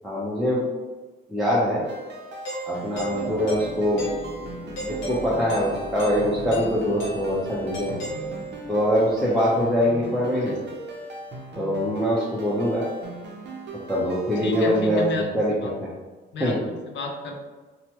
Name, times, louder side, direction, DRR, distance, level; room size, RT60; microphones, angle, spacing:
voice 1, 0.0-0.6 1.3-1.8 2.7-4.1 4.9-8.0 8.7-10.5 11.5-12.8 13.9-15.5 15.8-15.9 16.4-16.6, equal, ahead, -8 dB, 0.6 m, -23 dB
sound 1, 1.8-15.2, right 2 dB, 60° right, 0.6 m, -39 dB
Doorbell, 2.4-8.8, right 1 dB, 85° left, 0.9 m, -35 dB
sound 2, 2.9-11.5, equal, 20° left, 1.4 m, -42 dB
voice 2, 10.3-10.8 14.4-15.3 15.6-15.7 16.3-17.4, left 2 dB, 65° left, 2 dB, 0.6 m, -33 dB
2.9 x 2.2 x 2.8 m, 1.3 s
cardioid pair, 90°, 20 cm